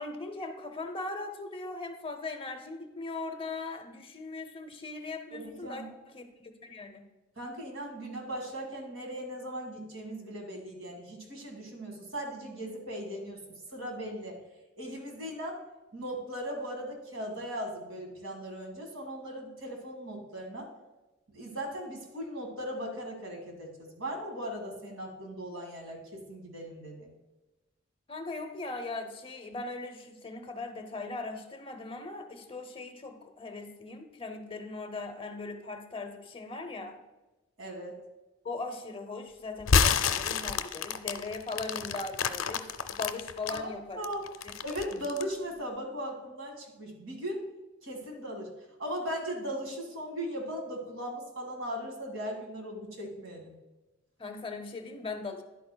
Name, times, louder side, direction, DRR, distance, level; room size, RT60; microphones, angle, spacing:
voice 1, 0.0-7.0 28.1-37.0 38.4-44.1 44.4-44.5 54.2-55.4, left 3 dB, 30° left, 6 dB, 0.7 m, -39 dB
voice 2, 5.3-5.9 7.4-13.4 13.7-14.4 14.8-15.6 15.9-20.7 21.3-27.1 37.6-38.0 43.5-44.2 44.6-47.4 47.8-48.5 48.8-53.5, equal, 80° right, 2 dB, 1.8 m, -38 dB
sound 1, 39.6-43.6 44.0-45.3, left 6 dB, 75° left, 0.4 m, -28 dB
10.5 x 8.4 x 2.2 m, 1.1 s
head